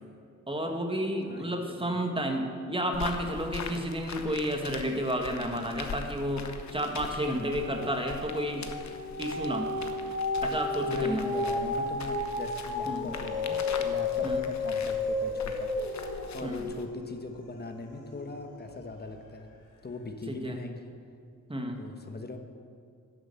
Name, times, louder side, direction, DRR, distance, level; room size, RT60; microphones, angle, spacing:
voice 1, 0.5-6.5 6.7-8.7 9.2-9.7 10.4-11.2 12.8-13.1 14.2-14.4 16.4-16.7 20.3-20.6 21.5-21.8, equal, 15° right, 3 dB, 1.5 m, -31 dB
voice 2, 1.3-2.0 10.8-19.5 19.8-20.9 21.8-22.4, left 3 dB, 30° left, 5 dB, 1.1 m, -41 dB
sound 1, 2.9-16.9, left 5 dB, 60° left, 1.0 m, -42 dB
sound 2, 5.6-6.1 6.4-18.9 19.5-19.6, left 3 dB, 80° left, 2.1 m, -33 dB
11.0 x 7.7 x 6.9 m, 2.3 s
cardioid pair, 90°, 31 cm